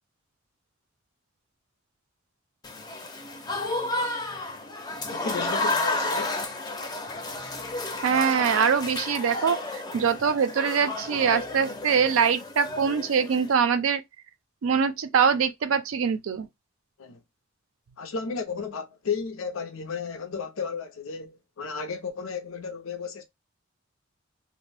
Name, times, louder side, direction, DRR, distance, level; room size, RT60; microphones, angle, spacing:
Applause / Crowd, 2.6-13.5, left 2 dB, 20° left, 0.5 m, -32 dB
voice 1, 5.1-6.4 17.0-17.2 18.0-23.2, left 5 dB, 80° left, 0.5 m, -33 dB
voice 2, 8.0-14.0 14.6-16.5, right 6 dB, 80° right, 0.4 m, -23 dB
2.5 x 2.0 x 3.2 m
head